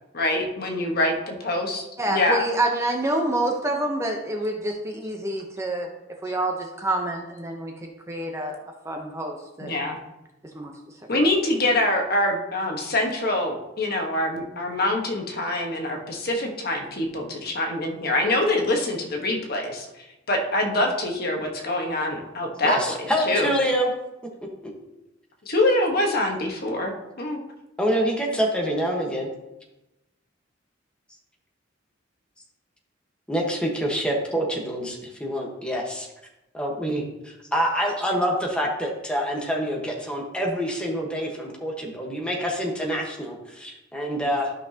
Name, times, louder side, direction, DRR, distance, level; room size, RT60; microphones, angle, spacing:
voice 1, 0.1-2.4 9.6-10.0 11.1-19.9 20.3-23.5 25.4-26.9 27.2-27.4, left 1 dB, 50° left, 2 dB, 1.3 m, -25 dB
voice 2, 2.0-5.9 6.2-8.6 8.8-9.7 10.5-10.7, right 1 dB, 15° right, 2 dB, 0.8 m, -27 dB
voice 3, 22.6-23.9 24.6-24.7 27.8-29.3 33.3-36.1 36.5-44.5, equal, 5° left, -1 dB, 1.3 m, -26 dB
12.5 x 5.8 x 2.9 m, 0.95 s
head